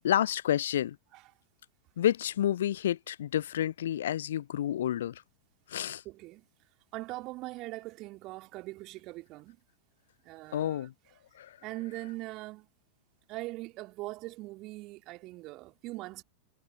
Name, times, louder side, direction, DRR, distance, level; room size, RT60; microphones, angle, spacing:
voice 1, 0.0-1.0 2.0-5.2 5.7-6.0 10.5-10.9 11.4-11.5, left 11 dB, 60° left, 0.4 m, -29 dB
voice 2, 6.0-6.5 6.9-9.6 10.2-10.9 11.6-12.7 13.3-16.2, right 20 dB, 40° right, 3.0 m, -41 dB
figure-of-eight pair, 90°, 0 cm